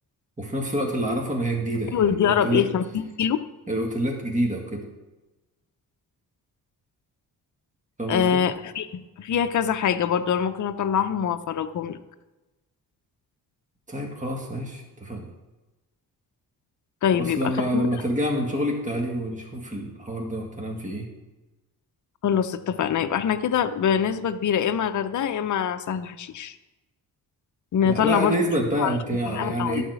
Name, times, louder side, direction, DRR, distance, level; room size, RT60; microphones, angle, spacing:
voice 1, 0.4-2.7 3.7-4.9 8.0-8.4 13.9-15.3 17.1-21.1 27.8-29.8, right 1 dB, 20° right, 0 dB, 2.0 m, -27 dB
voice 2, 1.9-3.4 8.1-12.0 17.0-17.4 17.7-17.8 22.2-26.5 27.7-28.4 28.8-28.9 29.3-29.8, left 8 dB, 50° left, 9 dB, 0.7 m, -24 dB
12.0 x 4.2 x 8.1 m, 1.1 s
cardioid pair, 90°, 39 cm